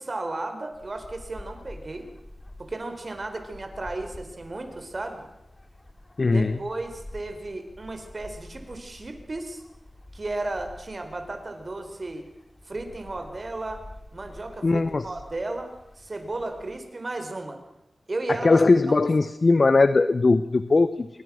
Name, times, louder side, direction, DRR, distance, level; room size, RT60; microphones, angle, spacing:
voice 1, 0.0-2.1 2.6-5.2 6.3-9.6 10.1-12.3 12.7-13.8 14.1-17.6 18.1-18.6 18.9-19.0, right 2 dB, 45° right, 6 dB, 4.6 m, -34 dB
sound 1, 0.7-16.8, left 1 dB, 30° left, 3.0 m, -48 dB
voice 2, 6.2-6.6 14.6-15.1 18.3-21.1, left 3 dB, 55° left, 13 dB, 0.9 m, -20 dB
26.5 x 23.5 x 6.4 m, 0.87 s
cardioid pair, 55°, 0 cm